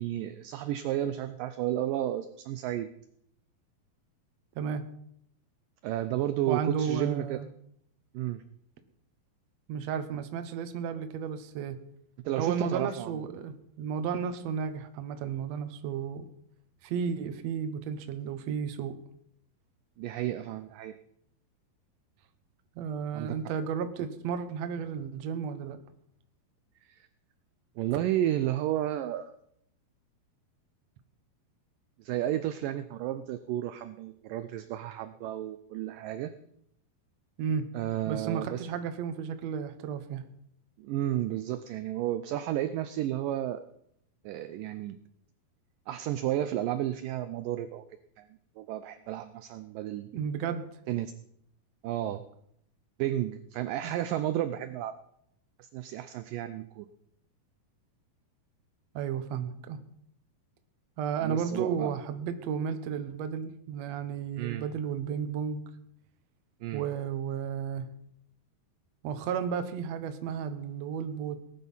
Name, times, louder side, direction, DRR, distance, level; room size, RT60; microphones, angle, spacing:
voice 1, 0.0-2.9 5.8-7.4 8.1-8.4 12.3-13.2 20.0-21.0 23.1-23.4 26.9-27.1 27.8-29.3 32.0-36.3 37.7-38.6 40.8-43.6 44.2-45.0 45.9-47.8 48.2-48.3 48.6-50.1 50.9-51.1 51.8-52.2 53.0-55.0 55.6-56.9 61.2-61.9 64.4-64.7 66.6-66.9, right 12 dB, 85° right, 11 dB, 1.9 m, -32 dB
voice 2, 6.5-7.5 9.7-11.8 12.4-16.3 16.8-19.0 22.7-25.8 37.4-37.7 38.1-40.2 50.1-50.6 53.8-53.9 58.9-59.8 61.0-65.6 66.7-67.9 69.0-71.4, right 7 dB, 65° right, 9 dB, 1.7 m, -33 dB
18.5 x 10.5 x 5.6 m, 0.73 s
omnidirectional pair, 4.6 m